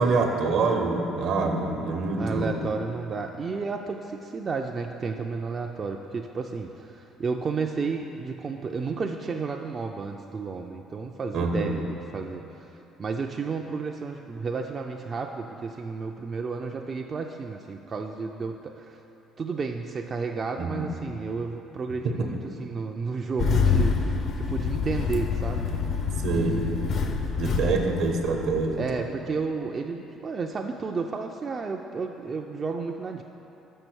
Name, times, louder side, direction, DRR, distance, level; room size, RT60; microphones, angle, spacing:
voice 1, 0.0-2.6 11.3-11.7 20.6-20.9 22.2-22.3 26.2-26.5 27.4-29.0, right 3 dB, 70° right, 3 dB, 0.9 m, -26 dB
voice 2, 2.2-11.9 12.1-12.7 13.0-19.0 19.4-25.7 26.3-27.1 27.4-27.9 28.8-33.2, right 4 dB, 40° right, 2 dB, 0.4 m, -32 dB
Engine starting, 23.4-28.9, left 5 dB, 55° left, 0.6 m, -27 dB
6.3 x 5.5 x 6.2 m, 3.0 s
supercardioid pair, 85°, 0 cm